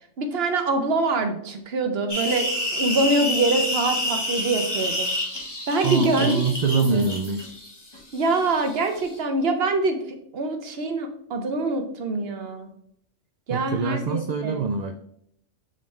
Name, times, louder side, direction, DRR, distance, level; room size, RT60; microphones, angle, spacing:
voice 1, 0.2-2.5 2.7-5.1 5.7-6.4 6.8-7.1 8.1-10.0 10.3-12.7 13.5-14.6, right 2 dB, 55° right, 6 dB, 1.0 m, -24 dB
sound 1, 2.1-9.2, left 1 dB, 20° left, 1.3 m, -29 dB
voice 2, 5.8-7.5 13.5-15.0, right 4 dB, 80° right, 7 dB, 0.3 m, -24 dB
7.3 x 4.1 x 3.2 m, 0.71 s
omnidirectional pair, 1.3 m